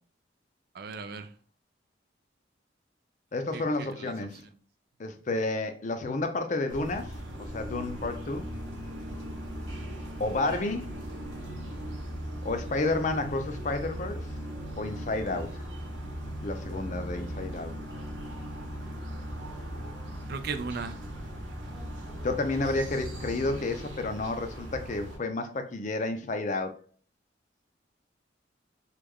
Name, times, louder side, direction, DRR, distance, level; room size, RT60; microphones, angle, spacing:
voice 1, 0.7-1.3 3.5-4.5 20.3-21.0, right 5 dB, 55° right, 0.4 m, -37 dB
voice 2, 3.3-4.4 5.0-7.1 7.4-8.5 10.2-10.9 12.4-14.2 14.8-15.6 16.4-17.7 22.2-26.8, left 2 dB, 40° left, 0.4 m, -31 dB
sound 1, 6.7-25.2, equal, 80° right, 1.0 m, -38 dB
3.1 x 2.3 x 3.5 m
head